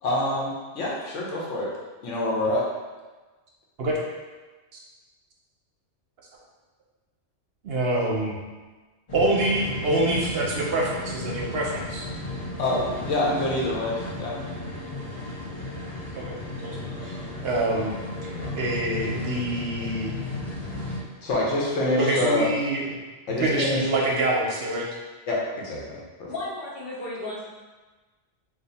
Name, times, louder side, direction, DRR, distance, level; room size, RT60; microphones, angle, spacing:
voice 1, 0.0-1.7 2.0-2.7 12.6-14.4 21.2-22.5 23.3-23.9 25.3-26.3, left 1 dB, 85° left, -4 dB, 1.1 m, -26 dB
voice 2, 7.6-8.4 9.1-12.1 16.1-16.4 16.6-17.2 17.4-18.0 18.2-20.1 22.0-23.0 23.4-24.9, right 2 dB, 65° right, -2 dB, 0.7 m, -26 dB
sound 1, 9.1-21.0, left 2 dB, 30° left, 0.7 m, -34 dB
voice 3, 26.3-27.4, left 2 dB, 55° left, -8 dB, 1.2 m, -34 dB
2.7 x 2.5 x 4.0 m, 1.3 s
omnidirectional pair, 1.2 m